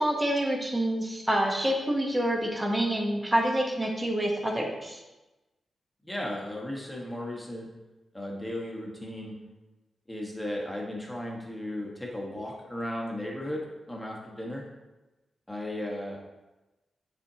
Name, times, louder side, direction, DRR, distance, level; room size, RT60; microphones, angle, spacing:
voice 1, 0.0-5.0, right 1 dB, 10° right, 1 dB, 1.0 m, -27 dB
voice 2, 6.1-7.7 8.1-9.4 10.1-13.6 13.9-14.6 15.5-16.2, left 1 dB, 5° left, -2 dB, 1.2 m, -35 dB
9.5 x 4.3 x 2.8 m, 1.1 s
wide cardioid pair, 145°, 0 cm